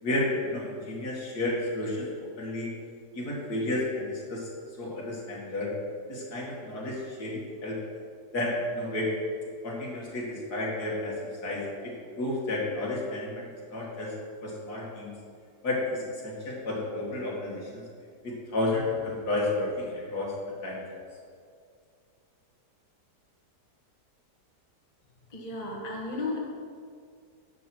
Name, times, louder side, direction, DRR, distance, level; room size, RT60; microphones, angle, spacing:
voice 1, 0.0-2.1 2.4-2.7 3.1-4.5 4.8-5.7 6.1-7.8 8.3-9.1 9.6-14.1 14.4-15.1 15.6-17.8 18.2-20.3 20.6-20.8, left 2 dB, 65° left, -4 dB, 2.7 m, -31 dB
voice 2, 25.3-26.4, left 2 dB, 25° left, -2 dB, 1.4 m, -34 dB
10.5 x 7.7 x 4.6 m, 2.2 s
omnidirectional pair, 1.8 m